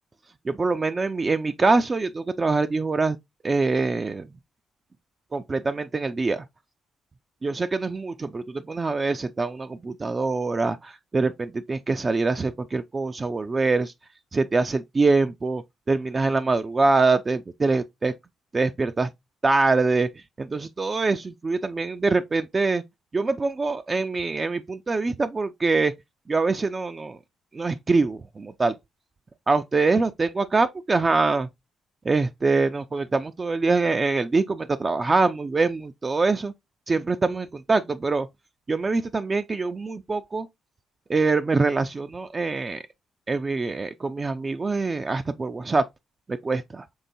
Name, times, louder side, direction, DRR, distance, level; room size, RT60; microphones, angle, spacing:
voice 1, 0.5-3.2 3.4-4.3 5.3-6.5 7.4-13.9 14.3-15.6 15.9-18.1 18.5-19.1 19.4-20.1 20.4-22.8 23.1-25.9 26.3-27.2 27.5-28.7 29.5-31.5 32.0-36.5 36.9-38.3 38.7-40.5 41.1-42.8 43.3-45.8 46.4-46.9, right 3 dB, 30° right, 0.3 m, -24 dB
5.4 x 3.6 x 2.5 m
cardioid pair, 90°, 0 cm